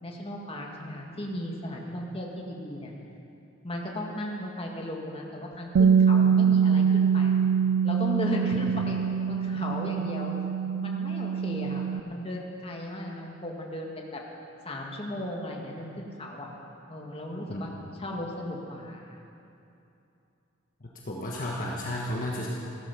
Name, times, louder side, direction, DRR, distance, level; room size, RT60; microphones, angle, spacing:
voice 1, 0.0-2.9 3.6-7.4 7.8-9.0 9.3-10.3 10.8-14.2 14.6-16.5 16.9-17.7 18.0-19.2, equal, 30° left, -1 dB, 1.9 m, -36 dB
Bass guitar, 5.8-12.0, right 7 dB, 85° right, 0.3 m, -24 dB
voice 2, 20.8-22.5, left 1 dB, 45° left, -3 dB, 1.4 m, -33 dB
15.5 x 13.0 x 6.0 m, 2.8 s
head